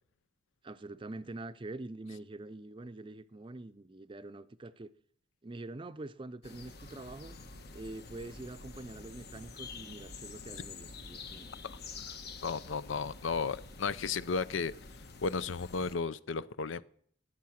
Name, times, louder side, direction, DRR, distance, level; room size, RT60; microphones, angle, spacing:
voice 1, 0.6-4.9 5.4-7.4 7.7-11.5, right 2 dB, 25° right, 0.5 m, -45 dB
sound 1, 6.4-16.0, left 4 dB, 55° left, 1.2 m, -48 dB
voice 2, 12.4-14.7 15.2-16.8, left 5 dB, 80° left, 0.6 m, -34 dB
16.0 x 9.7 x 6.3 m
head